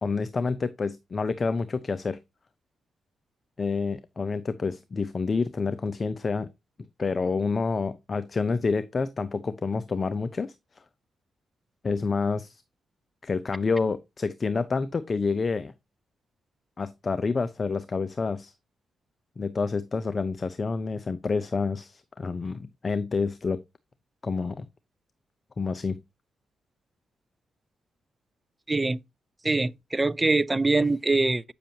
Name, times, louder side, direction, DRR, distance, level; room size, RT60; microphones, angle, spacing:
voice 1, 0.0-2.2 3.6-6.5 7.0-10.5 11.8-12.6 13.2-15.7 16.8-18.5 19.4-23.6 24.2-24.7 25.6-26.0 30.8-30.9, left 4 dB, 35° left, 0.6 m, -28 dB
voice 2, 28.7-29.0 29.4-31.4, right 3 dB, 20° right, 0.4 m, -23 dB
8.7 x 6.8 x 2.8 m
cardioid pair, 80°, 0 cm